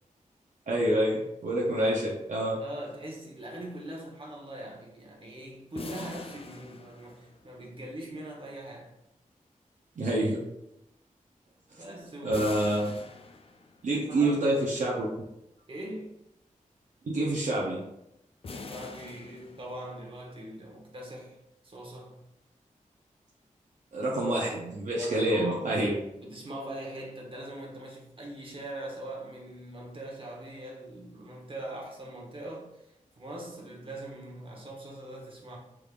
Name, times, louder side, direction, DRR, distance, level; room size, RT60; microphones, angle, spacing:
voice 1, 0.7-2.6 10.0-10.5 11.7-11.8 12.2-12.9 13.8-15.1 17.0-17.9 23.9-26.0, right 1 dB, 65° right, -4 dB, 0.7 m, -27 dB
voice 2, 2.6-8.9 11.8-12.6 13.9-14.5 15.7-16.2 18.6-21.4 21.6-22.2 25.0-25.8 26.2-35.6, right 1 dB, 40° right, -2 dB, 1.0 m, -42 dB
sound 1, 5.8-7.6 12.3-14.0 18.4-20.1, left 3 dB, 45° left, 0.4 m, -43 dB
3.5 x 3.3 x 2.4 m, 0.85 s
wide cardioid pair, 70°, 14 cm